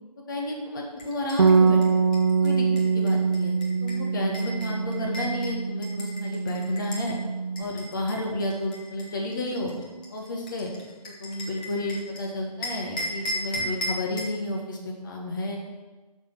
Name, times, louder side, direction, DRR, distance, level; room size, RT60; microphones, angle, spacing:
voice 1, 0.3-2.0 2.4-2.6 2.9-3.5 3.8-7.2 7.6-9.7 10.1-10.7 11.2-15.6, left 1 dB, 30° left, -1 dB, 1.6 m, -31 dB
sound 1, 1.0-7.1 7.6-12.2 12.6-14.4, equal, 10° left, 0.9 m, -36 dB
Bass guitar, 1.4-7.6, right 5 dB, 45° right, 0.5 m, -24 dB
9.2 x 6.3 x 6.2 m, 1.2 s
figure-of-eight pair, 165°, 20 cm